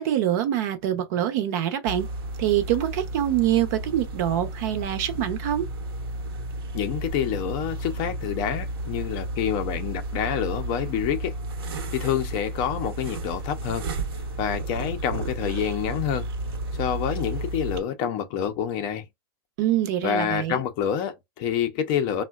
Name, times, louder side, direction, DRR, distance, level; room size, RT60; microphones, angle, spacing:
voice 1, 0.0-2.1 2.4-5.7 19.6-20.6, right 11 dB, 45° right, 0.7 m, -25 dB
sound 1, 1.9-17.8, right 1 dB, 75° right, 0.9 m, -32 dB
voice 2, 6.7-11.3 11.9-13.9 14.4-16.3 16.7-19.0 20.0-22.2, left 9 dB, 35° left, 0.5 m, -27 dB
3.5 x 2.2 x 2.2 m
supercardioid pair, 155°, 13 cm